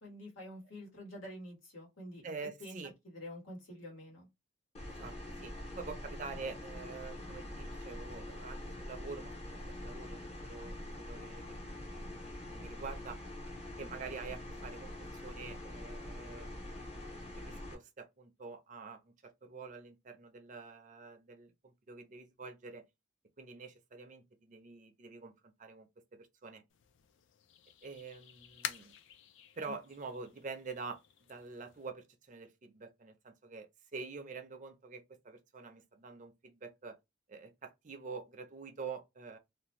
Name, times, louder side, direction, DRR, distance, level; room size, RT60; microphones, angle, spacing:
voice 1, 0.0-2.2 2.6-2.8 3.0-4.3 29.7-29.8, left 1 dB, 85° left, 1.4 m, -47 dB
voice 2, 2.2-2.9 4.9-9.3 9.7-13.2 13.8-17.1 17.3-22.8 23.4-26.6 27.8-29.0 29.5-31.0 31.3-37.0 37.3-39.4, right 4 dB, 40° right, 0.5 m, -47 dB
sound 1, 4.7-17.7, left 1 dB, 30° left, 0.7 m, -45 dB
sound 2, 26.7-31.9, left 9 dB, 70° left, 0.4 m, -48 dB
2.6 x 2.1 x 3.0 m
head